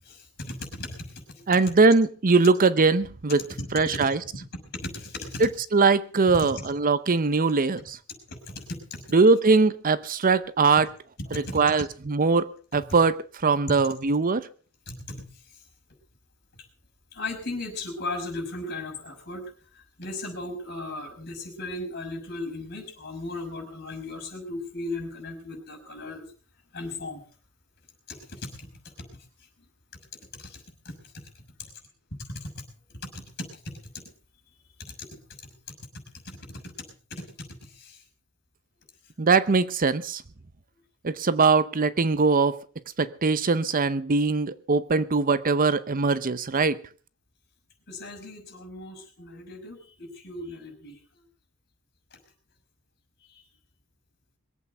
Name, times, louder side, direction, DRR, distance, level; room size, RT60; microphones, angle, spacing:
voice 1, 0.0-1.5 3.4-4.1 4.5-5.5 6.3-6.5 8.1-9.1 10.8-10.9 11.2-11.6 12.7-13.0 14.9-15.6 16.5-16.6 17.1-26.2 26.7-27.2 28.1-29.1 30.2-31.5 32.2-32.7 33.0-34.0 34.8-35.5 35.9-38.0 47.9-51.3 52.1-52.2 53.2-53.4, left 2 dB, 50° left, 6.2 m, -38 dB
voice 2, 1.5-3.4 3.7-4.2 5.4-8.0 9.1-10.9 11.5-14.4 39.2-40.2 41.0-42.5 43.0-46.8, right 4 dB, 40° right, 0.7 m, -21 dB
22.0 x 8.4 x 6.6 m
head